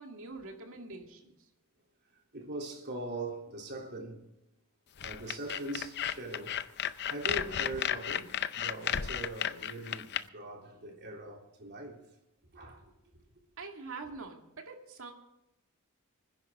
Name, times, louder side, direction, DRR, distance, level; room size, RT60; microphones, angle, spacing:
voice 1, 0.0-1.3 13.6-15.1, right 3 dB, 65° right, 2.3 m, -44 dB
voice 2, 2.3-4.2 5.0-6.5 7.0-12.0 12.5-12.8, right 1 dB, 50° right, 3.4 m, -41 dB
sound 1, 5.0-10.2, left 9 dB, 50° left, 0.6 m, -33 dB
25.5 x 10.5 x 3.7 m
head